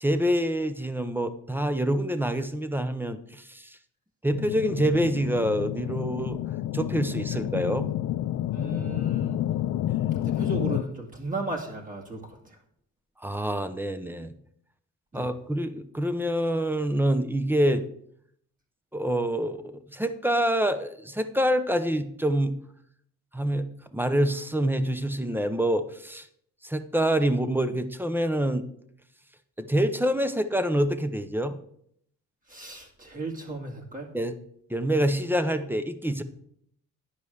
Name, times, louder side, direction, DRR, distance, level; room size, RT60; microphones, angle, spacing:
voice 1, 0.0-3.6 4.2-6.4 6.7-7.9 13.2-14.3 15.1-17.8 18.9-22.6 23.3-23.7 23.9-26.3 26.6-28.7 29.6-31.6 34.1-34.4 34.7-36.2, right 1 dB, 5° right, 11 dB, 0.8 m, -26 dB
sound 1, 4.3-10.8, left 13 dB, 65° left, 0.5 m, -29 dB
voice 2, 8.5-9.4 10.2-12.6 15.1-15.3 32.5-34.1, right 2 dB, 25° right, -1 dB, 2.1 m, -35 dB
9.9 x 5.2 x 6.3 m, 0.68 s
cardioid pair, 90°, 30 cm